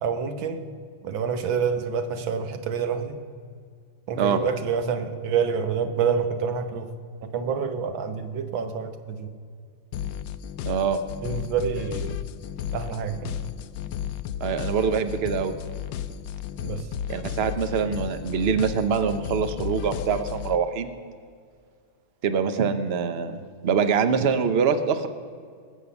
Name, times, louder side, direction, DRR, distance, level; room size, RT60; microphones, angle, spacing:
voice 1, 0.0-0.7 1.0-3.2 4.1-6.9 7.2-9.3 11.2-12.2 12.7-13.4 16.6-16.9, right 6 dB, 80° right, 8 dB, 1.8 m, -27 dB
sound 1, 9.9-20.6, left 10 dB, 75° left, 1.2 m, -33 dB
voice 2, 10.6-11.0 14.4-15.5 17.1-20.9 22.2-23.4 23.6-25.1, right 6 dB, 55° right, 10 dB, 0.7 m, -24 dB
20.0 x 7.6 x 7.0 m, 2.2 s
omnidirectional pair, 2.1 m